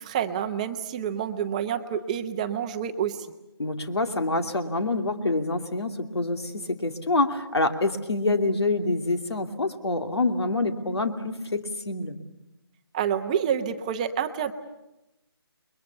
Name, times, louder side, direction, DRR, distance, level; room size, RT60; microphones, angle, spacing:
voice 1, 0.0-3.3 12.9-14.5, right 8 dB, 15° right, 7 dB, 0.8 m, -28 dB
voice 2, 3.6-12.2, left 2 dB, 85° left, 6 dB, 2.7 m, -26 dB
29.0 x 22.5 x 7.0 m, 0.93 s
figure-of-eight pair, 165°, 13 cm